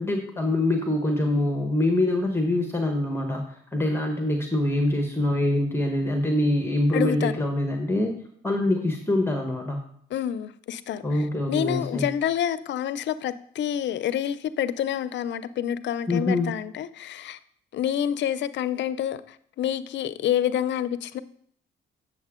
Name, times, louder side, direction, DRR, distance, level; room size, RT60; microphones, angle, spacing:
voice 1, 0.0-9.8 11.0-12.0 16.1-16.5, left 1 dB, 10° left, 1.2 m, -24 dB
voice 2, 6.9-7.3 10.1-11.2 11.5-17.4 17.7-21.2, left 10 dB, 65° left, 0.5 m, -28 dB
8.2 x 6.9 x 3.7 m
cardioid pair, 90°, 20 cm